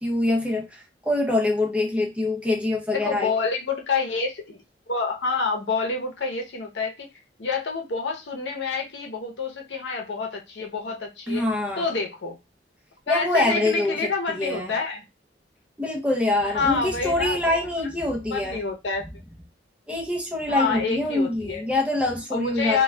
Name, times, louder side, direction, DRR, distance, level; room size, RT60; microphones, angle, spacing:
voice 1, 0.0-3.3 11.3-11.9 13.1-14.7 15.8-18.6 19.9-22.8, left 2 dB, 5° right, 0.6 m, -25 dB
voice 2, 2.9-4.6 4.9-7.1 7.4-11.5 11.8-12.4 13.1-15.0 16.5-17.4 18.3-19.1 20.5-21.6 22.3-22.8, left 4 dB, 75° left, 0.7 m, -27 dB
2.3 x 2.2 x 3.2 m
head